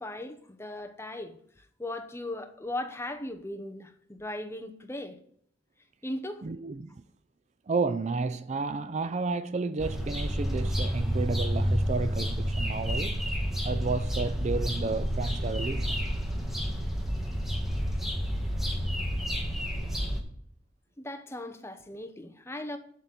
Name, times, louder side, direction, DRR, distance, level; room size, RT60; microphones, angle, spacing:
voice 1, 0.0-1.4 1.8-5.2 6.0-6.4 21.0-22.8, left 1 dB, 15° left, 0.9 m, -38 dB
voice 2, 6.4-6.9 7.7-13.2 13.6-16.1, right 4 dB, 35° right, 0.4 m, -31 dB
sound 1, 9.8-20.2, equal, ahead, 1.5 m, -30 dB
11.5 x 4.1 x 7.9 m
head